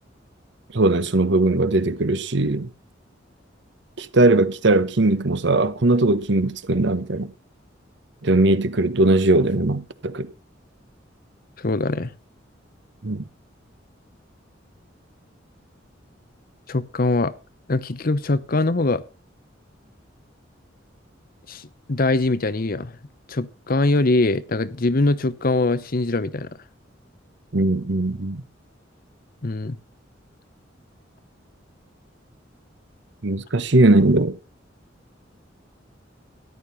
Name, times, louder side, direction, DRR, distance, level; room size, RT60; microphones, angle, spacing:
voice 1, 0.7-2.7 4.0-7.3 8.2-10.3 13.0-13.2 27.5-28.4 33.2-34.4, right 2 dB, 65° right, 1.1 m, -19 dB
voice 2, 11.6-12.1 16.7-17.3 17.7-19.0 21.5-22.9 23.3-26.5 29.4-29.8, left 2 dB, 50° left, 0.8 m, -22 dB
13.5 x 10.5 x 4.1 m
head